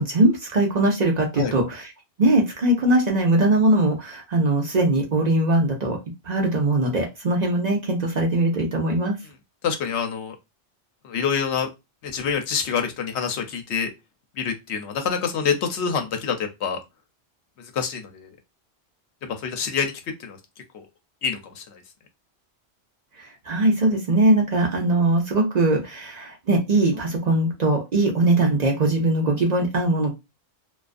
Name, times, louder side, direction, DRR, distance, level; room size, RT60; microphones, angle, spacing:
voice 1, 0.0-1.9 2.2-6.0 6.2-9.2 23.2-30.1, right 2 dB, 50° right, 0 dB, 0.6 m, -21 dB
voice 2, 9.6-10.3 11.0-11.7 12.0-13.9 14.4-16.4 16.6-16.8 17.7-18.3 19.4-19.9 20.2-20.4 20.7-20.8 21.2-21.6, left 6 dB, 80° left, 5 dB, 0.9 m, -26 dB
2.3 x 2.3 x 2.4 m, 0.23 s
omnidirectional pair, 1.1 m